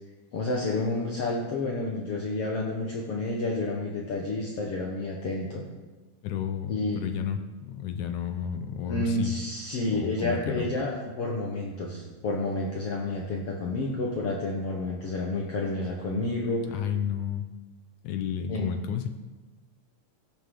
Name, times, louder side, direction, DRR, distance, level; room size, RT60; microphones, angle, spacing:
voice 1, 0.3-5.6 6.7-7.0 8.9-16.6 18.5-18.8, left 2 dB, 55° left, -2 dB, 2.2 m, -30 dB
voice 2, 6.2-9.3 9.9-10.7 16.7-17.5 18.0-19.1, left 8 dB, 85° left, 7 dB, 2.3 m, -31 dB
17.0 x 13.5 x 3.9 m, 1.2 s
omnidirectional pair, 3.5 m